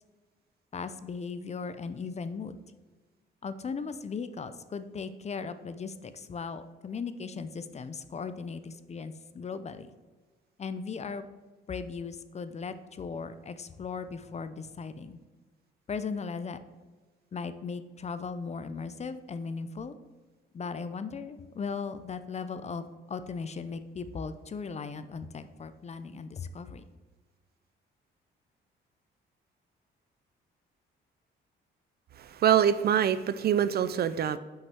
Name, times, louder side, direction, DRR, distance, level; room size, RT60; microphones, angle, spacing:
voice 1, 0.7-2.6 3.4-9.9 10.6-11.2 11.7-15.2 15.9-16.6 17.3-19.9 20.5-26.8, left 5 dB, 35° left, 12 dB, 0.5 m, -37 dB
voice 2, 32.2-34.4, right 9 dB, 55° right, 14 dB, 0.5 m, -25 dB
5.6 x 5.3 x 6.0 m, 1.3 s
cardioid pair, 90°, 20 cm